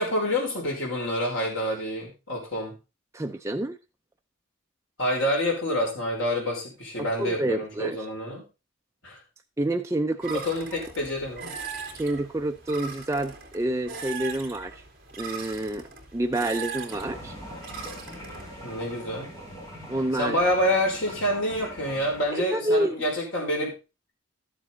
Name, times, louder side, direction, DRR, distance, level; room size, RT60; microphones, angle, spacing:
voice 1, 0.0-2.8 5.0-8.5 9.0-9.2 10.3-11.5 18.6-19.3 20.2-23.7, left 1 dB, 65° left, 4.9 m, -27 dB
voice 2, 3.1-3.8 7.0-8.0 9.6-10.4 11.9-14.8 15.2-15.9 16.1-17.3 19.9-20.4 22.5-22.9, right 1 dB, 15° right, 0.4 m, -28 dB
sound 1, 10.2-18.5, right 5 dB, 45° right, 2.8 m, -40 dB
sound 2, 16.9-22.3, equal, 15° left, 3.2 m, -42 dB
13.0 x 7.5 x 4.0 m
head